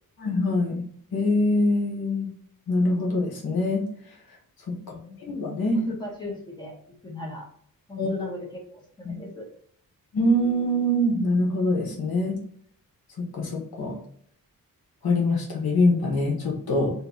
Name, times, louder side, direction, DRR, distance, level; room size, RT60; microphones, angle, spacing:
voice 1, 0.2-0.8 1.1-2.3 2.7-3.8 5.2-5.8 8.0-8.1 9.0-9.2 10.1-12.4 13.3-14.0 15.0-16.9, left 1 dB, 90° left, 0 dB, 1.1 m, -24 dB
voice 2, 4.8-5.2 5.7-6.8 7.0-7.5 7.9-9.5, left 2 dB, 10° left, -3 dB, 1.1 m, -37 dB
2.8 x 2.6 x 3.7 m, 0.63 s
wide cardioid pair, 120°, 35 cm